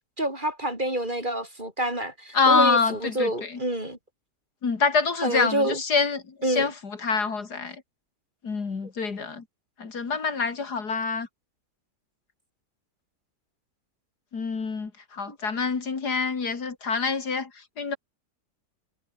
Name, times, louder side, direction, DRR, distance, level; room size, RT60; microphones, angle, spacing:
voice 1, 0.2-4.0 5.2-5.8 6.4-6.7 15.3-15.4, right 1 dB, 30° right, 6.6 m, -27 dB
voice 2, 2.3-3.6 4.6-7.8 8.4-9.4 9.8-11.3 14.3-17.5 17.8-18.0, left 4 dB, 75° left, 3.1 m, -26 dB
omnidirectional pair, 1.7 m